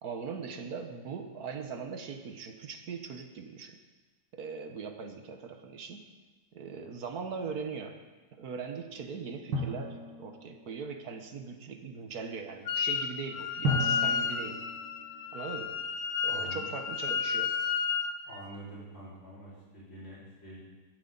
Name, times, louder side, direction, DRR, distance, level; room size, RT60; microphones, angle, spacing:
voice 1, 0.0-3.8 4.3-6.1 6.5-7.9 8.3-14.7 15.3-15.8 16.2-17.7, right 5 dB, 60° right, 6 dB, 1.6 m, -40 dB
Drum, 9.5-11.0 13.6-15.8, equal, 75° right, 2.6 m, -35 dB
Wind instrument woodwind instrument, 12.7-13.1 13.3-18.1, left 6 dB, 70° left, 1.4 m, -31 dB
voice 2, 16.3-16.7 18.2-20.6, right 1 dB, 40° left, -7 dB, 5.9 m, -46 dB
17.0 x 12.5 x 4.0 m, 1.3 s
omnidirectional pair, 2.0 m